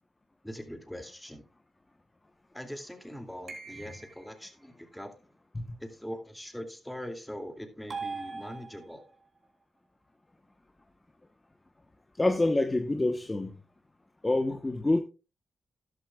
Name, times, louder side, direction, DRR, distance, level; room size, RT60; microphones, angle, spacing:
voice 1, 0.4-1.4 2.5-5.1 5.8-9.0, equal, 5° left, 2.4 m, -42 dB
sound 1, 3.5-4.4 7.9-9.1, right 4 dB, 50° right, 3.4 m, -40 dB
voice 2, 12.2-13.5 14.2-15.0, left 2 dB, 25° left, 1.0 m, -26 dB
13.0 x 11.0 x 2.4 m
cardioid pair, 60°, 0 cm